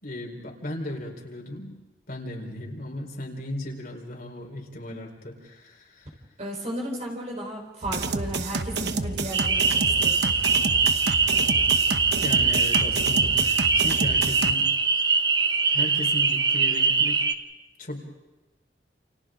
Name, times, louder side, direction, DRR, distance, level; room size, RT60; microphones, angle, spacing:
voice 1, 0.0-1.8 2.1-6.1 12.2-14.7 15.7-17.2 17.8-18.0, left 1 dB, 55° left, 0 dB, 4.3 m, -36 dB
voice 2, 6.4-10.3, equal, 40° right, -1 dB, 4.4 m, -34 dB
sound 1, 7.8-14.5, right 3 dB, 70° right, 1.1 m, -30 dB
sound 2, 9.3-17.3, right 5 dB, 25° right, 0.9 m, -22 dB
29.5 x 29.0 x 3.8 m, 1.1 s
head